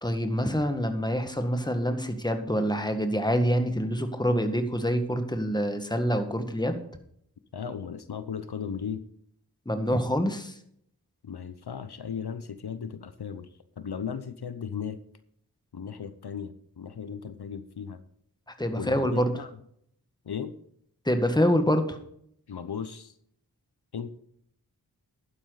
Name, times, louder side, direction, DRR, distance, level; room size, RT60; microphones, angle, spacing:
voice 1, 0.0-6.8 9.6-10.6 18.6-19.3 21.0-22.0, equal, 10° left, 7 dB, 1.8 m, -26 dB
voice 2, 7.5-9.0 11.2-13.5 13.8-15.0 15.7-18.0 18.8-19.5 20.2-20.5 22.5-23.1 23.9-24.1, left 7 dB, 75° left, 12 dB, 0.8 m, -36 dB
11.5 x 9.9 x 4.1 m, 0.68 s
wide cardioid pair, 45°, 39 cm